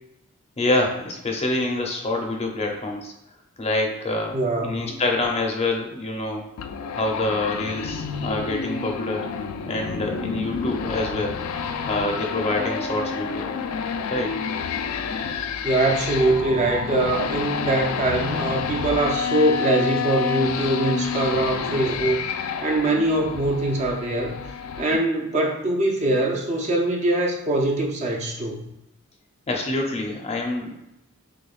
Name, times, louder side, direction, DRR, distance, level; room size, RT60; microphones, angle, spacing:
voice 1, 0.6-3.1 3.6-6.5 6.9-9.3 9.6-11.4 11.9-13.5 14.1-14.4 29.5-30.7, left 2 dB, 30° left, 1 dB, 0.6 m, -26 dB
voice 2, 4.3-5.0 15.6-22.2 22.6-24.4 24.8-28.7, right 2 dB, 35° right, 0 dB, 0.6 m, -23 dB
sound 1, 6.6-25.0, left 6 dB, 80° left, 0.3 m, -29 dB
6.3 x 2.2 x 2.4 m, 0.88 s
head